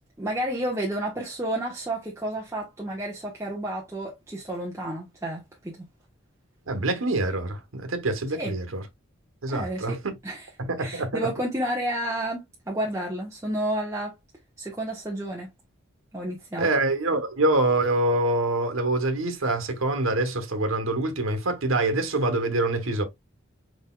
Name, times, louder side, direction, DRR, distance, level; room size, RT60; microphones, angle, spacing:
voice 1, 0.2-5.9 8.4-8.5 9.5-10.0 10.2-10.5 10.8-14.1 14.6-15.5 16.1-16.7, right 1 dB, 15° right, 1.0 m, -31 dB
voice 2, 6.7-8.8 9.4-10.1 10.6-11.3 16.6-23.0, right 2 dB, 90° right, 1.0 m, -25 dB
4.8 x 4.1 x 2.3 m
head